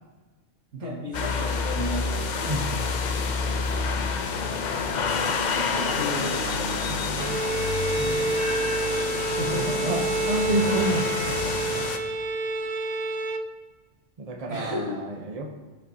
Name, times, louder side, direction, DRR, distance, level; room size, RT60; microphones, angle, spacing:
voice 1, 0.7-2.2 5.5-6.6 9.3-10.2 14.5-15.0, left 1 dB, 70° right, -3 dB, 2.2 m, -33 dB
sound 1, 1.1-12.0, left 4 dB, 50° left, 0.6 m, -28 dB
voice 2, 2.4-2.8 6.9-7.4 8.0-8.6 9.8-11.9 14.2-15.5, right 1 dB, 35° right, 3 dB, 0.8 m, -30 dB
Bowed string instrument, 7.2-13.5, right 3 dB, 90° right, 0.3 m, -28 dB
15.0 x 5.5 x 2.8 m, 1.3 s
omnidirectional pair, 1.3 m